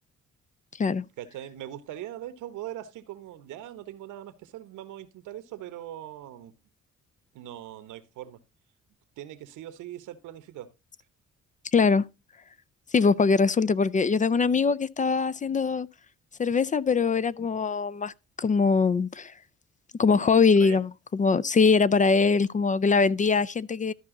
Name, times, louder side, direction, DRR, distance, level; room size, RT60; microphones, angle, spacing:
voice 1, 1.2-6.5 7.3-8.4 9.2-10.7 20.6-20.8, right 12 dB, 90° right, 1.1 m, -41 dB
voice 2, 11.7-12.0 12.9-15.9 16.4-19.3 20.0-23.9, left 5 dB, 25° left, 0.4 m, -22 dB
13.0 x 5.4 x 3.8 m
cardioid pair, 90°, 30 cm